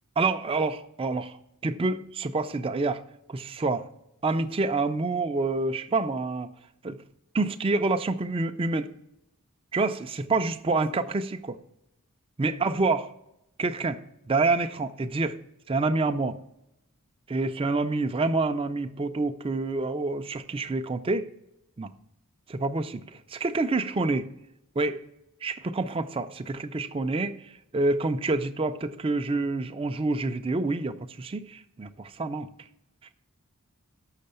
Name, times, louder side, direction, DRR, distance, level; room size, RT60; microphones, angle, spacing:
voice 1, 0.2-1.3 1.6-3.0 3.3-3.9 4.2-6.5 6.8-7.0 7.3-8.9 9.7-11.6 12.4-13.0 13.6-14.0 14.3-15.4 15.7-16.4 17.3-21.3 21.8-21.9 22.5-23.0 23.3-24.3 24.8-25.0 25.4-27.4 27.7-32.5, right 3 dB, 25° right, 8 dB, 0.4 m, -27 dB
6.5 x 6.1 x 6.7 m, 0.86 s
head